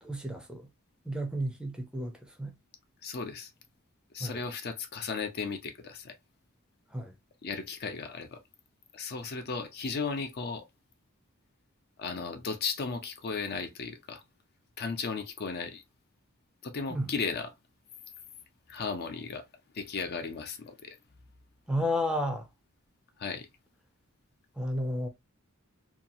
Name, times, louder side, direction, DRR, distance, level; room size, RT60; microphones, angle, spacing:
voice 1, 0.0-0.7 1.1-2.5 4.2-4.4 6.9-7.1 16.9-17.1 21.7-22.5 24.6-25.1, equal, 5° right, 0.5 m, -32 dB
voice 2, 3.0-3.5 4.1-6.2 7.4-8.4 8.9-10.6 12.0-14.2 14.8-15.8 16.6-17.5 18.7-19.4 19.7-21.0 23.2-23.5, left 5 dB, 50° left, 0.5 m, -35 dB
2.8 x 2.3 x 2.5 m
head